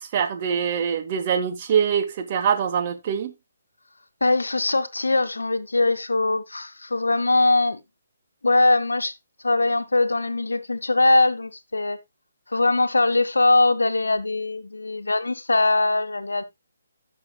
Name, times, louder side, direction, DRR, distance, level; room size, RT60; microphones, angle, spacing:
voice 1, 0.0-3.3, right 7 dB, 35° right, 1.4 m, -24 dB
voice 2, 4.2-7.8 8.4-9.1 9.4-12.0 12.5-16.4, left 2 dB, 80° left, 1.1 m, -21 dB
16.0 x 6.2 x 2.3 m
figure-of-eight pair, 140°, 0 cm